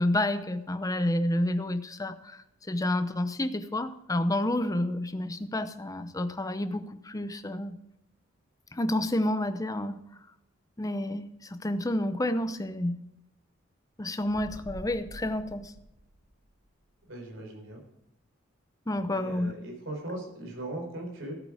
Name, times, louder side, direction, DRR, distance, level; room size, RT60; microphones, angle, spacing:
voice 1, 0.0-7.8 8.7-10.0 10.8-13.0 14.0-15.7 18.9-19.5, left 1 dB, 15° left, 10 dB, 0.7 m, -29 dB
sound 1, 14.1-16.6, right 1 dB, 90° right, 1.8 m, -46 dB
voice 2, 17.1-17.8 19.1-21.3, right 1 dB, 70° right, 2 dB, 4.1 m, -39 dB
14.0 x 8.4 x 4.9 m, 0.85 s
head